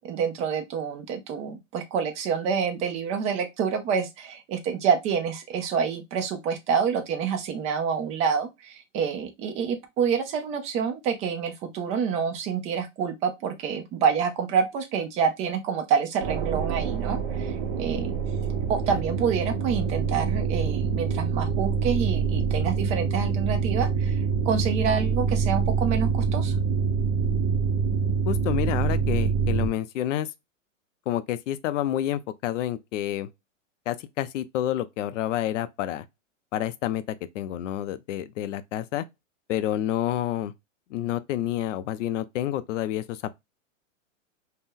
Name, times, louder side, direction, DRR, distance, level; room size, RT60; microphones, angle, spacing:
voice 1, 0.0-18.1 18.7-24.2 24.5-26.5, right 6 dB, 20° right, 0.4 m, -27 dB
sound 1, 16.2-29.7, right 5 dB, 45° right, 0.8 m, -26 dB
voice 2, 28.3-30.3 31.1-33.3 33.9-36.0 36.5-37.0 37.3-39.0 39.5-40.5 40.9-43.3, left 12 dB, 70° left, 0.5 m, -29 dB
2.7 x 2.1 x 3.6 m
hypercardioid pair, 130°, 39 cm